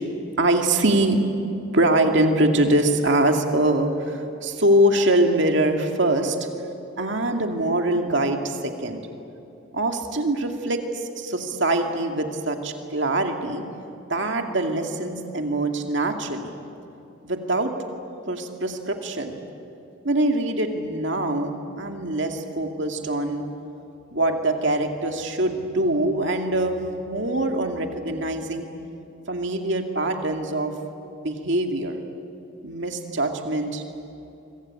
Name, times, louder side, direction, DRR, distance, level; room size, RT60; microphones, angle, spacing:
voice 1, 0.4-1.2 1.7-6.4 7.0-9.0 9.7-13.7 14.1-16.5 17.2-17.7 18.3-19.4 20.0-23.4 24.1-28.7 29.3-30.7 31.2-32.0 32.6-33.8, right 1 dB, 55° right, 4 dB, 2.4 m, -23 dB
25.5 x 24.5 x 8.9 m, 2.8 s
head